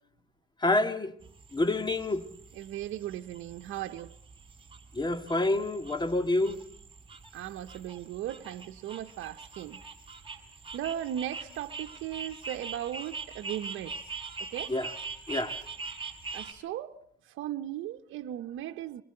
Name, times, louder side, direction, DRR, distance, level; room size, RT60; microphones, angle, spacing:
voice 1, 0.6-1.1 1.5-2.2 4.9-6.6 14.7-14.9 15.3-15.6, left 2 dB, 20° left, 1.8 m, -27 dB
sound 1, 1.2-16.5, right 4 dB, 25° right, 4.5 m, -43 dB
voice 2, 2.5-4.1 7.3-9.8 10.7-13.9 14.4-14.7 16.3-17.0 17.3-19.0, right 12 dB, 85° right, 0.9 m, -37 dB
25.5 x 21.5 x 7.8 m
cardioid pair, 90°, 20 cm